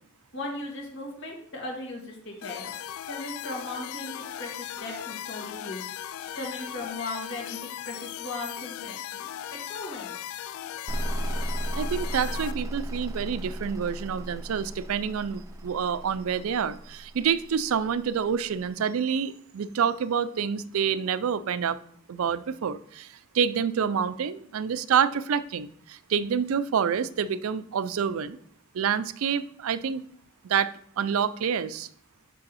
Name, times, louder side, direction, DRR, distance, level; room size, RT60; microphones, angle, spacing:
voice 1, 0.3-2.7 3.1-5.9 6.4-9.3 9.7-10.1, left 2 dB, 60° left, -1 dB, 2.1 m, -37 dB
sound 1, 2.4-12.5, left 11 dB, 80° left, 0.3 m, -38 dB
sound 2, 10.9-18.4, right 1 dB, 15° right, 0.4 m, -35 dB
voice 2, 11.7-21.8 22.1-28.4 28.7-30.0 30.4-31.9, right 7 dB, 80° right, 15 dB, 0.4 m, -27 dB
6.2 x 5.3 x 4.1 m, 0.62 s
head